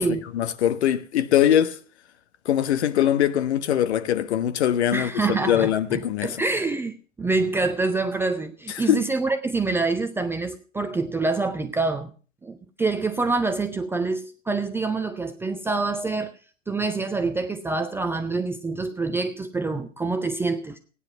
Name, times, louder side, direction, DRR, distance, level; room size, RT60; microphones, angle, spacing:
voice 1, 0.3-1.8 2.4-6.4 8.9-9.0, left 11 dB, 60° left, 1.3 m, -22 dB
voice 2, 4.9-12.1 12.4-16.3 16.7-20.8, right 3 dB, 5° right, 0.5 m, -26 dB
15.0 x 10.0 x 5.9 m
hypercardioid pair, 110°, 38 cm